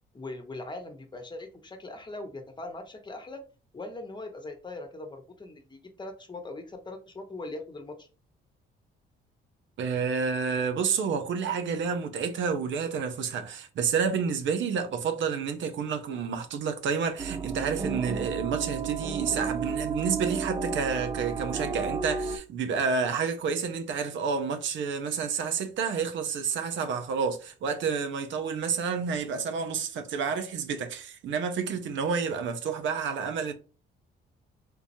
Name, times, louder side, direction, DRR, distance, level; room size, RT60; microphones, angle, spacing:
voice 1, 0.1-3.4 3.7-8.1, left 2 dB, 20° left, 0.9 m, -40 dB
voice 2, 9.8-33.5, right 6 dB, 70° right, 0.7 m, -29 dB
sound 1, 17.2-22.4, right 5 dB, 20° right, 0.4 m, -32 dB
3.7 x 2.9 x 2.6 m
cardioid pair, 90°, 20 cm